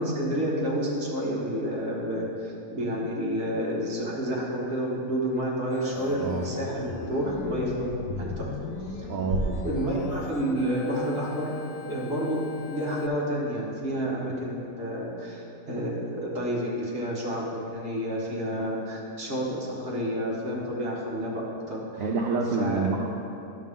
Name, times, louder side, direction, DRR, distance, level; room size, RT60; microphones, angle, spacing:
voice 1, 0.0-7.9 8.2-8.5 8.8-9.1 9.6-11.5 11.8-21.8 22.6-22.8, equal, 45° right, -5 dB, 1.8 m, -29 dB
Organ, 5.7-13.1, left 4 dB, 85° left, 1.2 m, -39 dB
voice 2, 6.2-6.6 9.1-9.8 22.0-23.1, right 4 dB, 70° right, 1 dB, 0.9 m, -28 dB
sound 1, 9.3-11.4, right 1 dB, 85° right, 1.5 m, -34 dB
11.5 x 6.4 x 3.7 m, 2.8 s
omnidirectional pair, 1.7 m